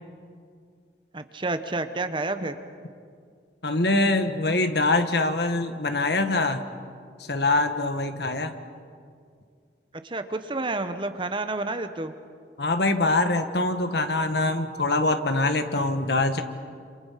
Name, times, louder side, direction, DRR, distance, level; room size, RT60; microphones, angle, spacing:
voice 1, 1.1-2.6 10.0-12.1, right 2 dB, 30° right, 9 dB, 1.1 m, -29 dB
voice 2, 3.6-6.6 7.3-8.5 12.6-16.4, left 2 dB, 70° left, 8 dB, 1.6 m, -24 dB
28.0 x 27.5 x 5.9 m, 2.2 s
head